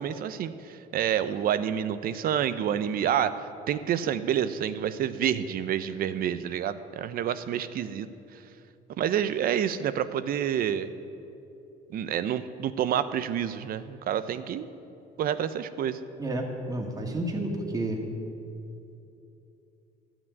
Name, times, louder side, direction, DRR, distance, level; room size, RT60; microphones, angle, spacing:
voice 1, 0.0-8.1 8.3-8.4 9.0-10.9 11.9-14.7 15.2-16.0, right 9 dB, 60° right, 13 dB, 0.6 m, -28 dB
voice 2, 16.2-18.0, right 1 dB, 20° right, 1 dB, 1.8 m, -31 dB
13.0 x 6.0 x 9.4 m, 2.8 s
cardioid pair, 110°, 17 cm